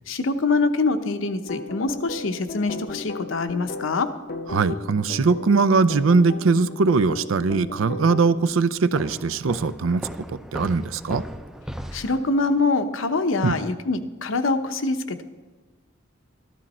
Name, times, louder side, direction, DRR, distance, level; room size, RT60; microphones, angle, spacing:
voice 1, 0.1-4.1 11.9-15.2, left 3 dB, 80° left, 9 dB, 0.8 m, -24 dB
sound 1, 1.4-8.5, left 3 dB, 50° left, 0.7 m, -36 dB
voice 2, 4.5-10.0 10.3-11.2 13.4-13.6, right 4 dB, 80° right, 15 dB, 0.5 m, -21 dB
sound 2, 8.9-12.6, equal, ahead, 0.4 m, -37 dB
13.5 x 12.5 x 4.3 m, 1.2 s
head